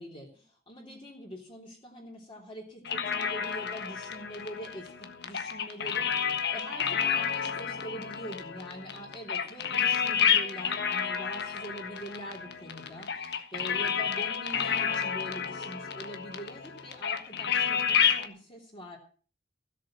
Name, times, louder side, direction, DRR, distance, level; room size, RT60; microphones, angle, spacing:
voice 1, 0.0-19.0, equal, 25° left, -2 dB, 3.5 m, -44 dB
sound 1, 2.9-18.3, left 7 dB, 60° left, 1.4 m, -30 dB
16.5 x 7.6 x 7.5 m, 0.42 s
head